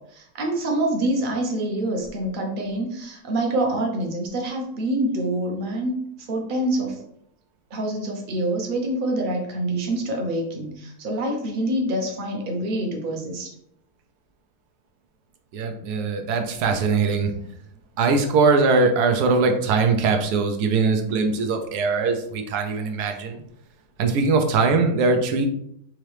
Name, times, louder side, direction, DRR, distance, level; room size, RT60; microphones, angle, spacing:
voice 1, 0.0-7.0 7.7-13.5, right 1 dB, 45° right, 1 dB, 0.8 m, -26 dB
voice 2, 15.5-17.3 18.0-23.4 24.0-25.5, right 4 dB, 85° right, 5 dB, 1.2 m, -21 dB
3.7 x 3.1 x 3.2 m, 0.72 s
omnidirectional pair, 1.7 m